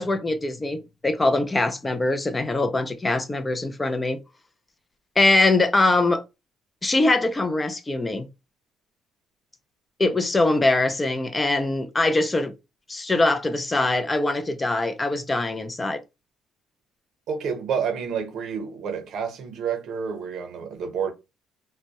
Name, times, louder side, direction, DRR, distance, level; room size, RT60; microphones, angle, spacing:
voice 1, 0.0-4.2 5.2-6.2 6.8-8.3 10.0-12.5 12.9-16.0, left 2 dB, 15° left, 0.3 m, -22 dB
voice 2, 17.3-21.1, right 6 dB, 60° right, 0.7 m, -29 dB
2.1 x 2.1 x 2.8 m
cardioid pair, 125°, 0 cm